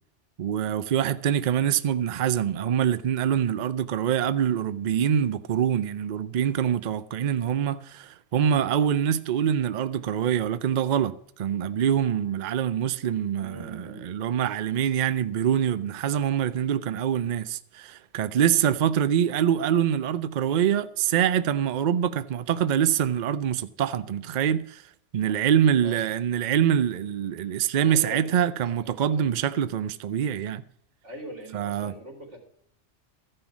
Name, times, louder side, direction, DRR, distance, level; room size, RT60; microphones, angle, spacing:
voice 1, 0.4-24.8 25.1-30.6 31.5-31.9, right 9 dB, 55° right, 0.6 m, -25 dB
voice 2, 13.4-14.1 25.3-25.4 25.8-26.0 27.8-28.3 28.6-29.3 31.0-32.4, right 1 dB, 80° right, 3.3 m, -41 dB
13.5 x 5.5 x 7.0 m
omnidirectional pair, 1.2 m